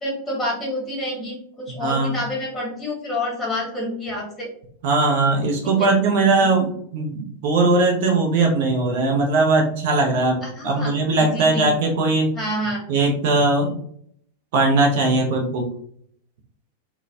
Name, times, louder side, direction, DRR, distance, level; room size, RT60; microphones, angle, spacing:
voice 1, 0.0-4.5 10.4-10.9 11.2-11.7 12.3-12.8, left 1 dB, 10° left, -1 dB, 1.4 m, -28 dB
voice 2, 1.7-2.2 4.8-12.3 12.9-13.8 14.5-15.7, right 3 dB, 50° right, 1 dB, 0.6 m, -20 dB
3.8 x 2.2 x 2.6 m, 0.65 s
figure-of-eight pair, 90°, 0 cm